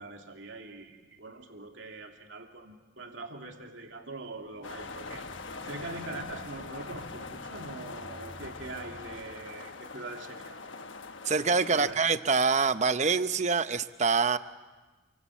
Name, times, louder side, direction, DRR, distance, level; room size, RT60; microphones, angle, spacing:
voice 1, 0.0-5.3 5.6-10.6 11.7-12.0, right 2 dB, 65° right, 2 dB, 2.8 m, -43 dB
sound 1, 4.4-9.5, equal, 20° left, 5.1 m, -50 dB
sound 2, 4.6-11.9, left 4 dB, 65° left, 1.3 m, -43 dB
voice 2, 11.2-14.4, right 4 dB, 35° right, 12 dB, 0.8 m, -25 dB
28.5 x 25.0 x 7.4 m, 1.3 s
head